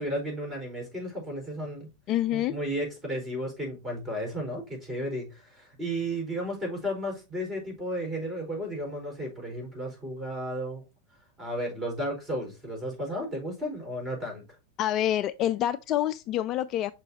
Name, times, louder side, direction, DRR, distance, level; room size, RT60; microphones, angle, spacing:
voice 1, 0.0-1.9 2.3-10.8 11.4-14.4, equal, 15° right, 4.4 m, -33 dB
voice 2, 2.1-2.5 14.8-16.9, left 12 dB, 35° left, 0.4 m, -27 dB
6.8 x 5.9 x 2.8 m
figure-of-eight pair, 90°, 0 cm